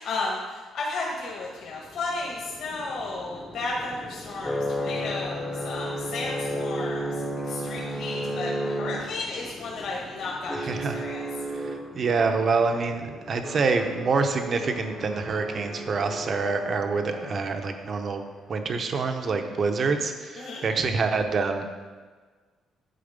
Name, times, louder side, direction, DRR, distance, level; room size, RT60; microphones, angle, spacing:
voice 1, 0.0-7.1 7.4-11.3 20.4-20.6, left 3 dB, 55° left, -4 dB, 1.5 m, -33 dB
sound 1, 1.6-17.9, equal, 5° left, 0.7 m, -34 dB
voice 2, 10.6-11.1 11.5-21.6, right 4 dB, 30° right, 6 dB, 0.7 m, -26 dB
10.0 x 4.6 x 5.2 m, 1.4 s
cardioid pair, 175°, 0 cm